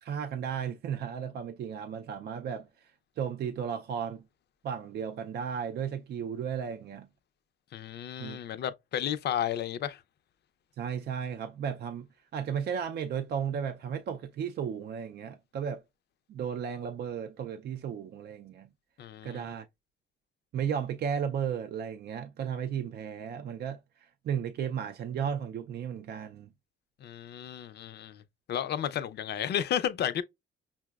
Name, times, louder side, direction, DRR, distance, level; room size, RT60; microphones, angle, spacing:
voice 1, 0.0-2.9 3.2-4.2 4.6-7.1 8.2-8.4 10.8-12.1 12.3-15.8 16.3-18.7 19.2-19.7 20.5-26.5, right 8 dB, 55° right, 0.4 m, -34 dB
voice 2, 7.7-10.0 19.0-19.5 27.0-28.2 28.5-30.2, left 10 dB, 60° left, 0.5 m, -32 dB
5.6 x 2.0 x 2.3 m
cardioid pair, 90°, 20 cm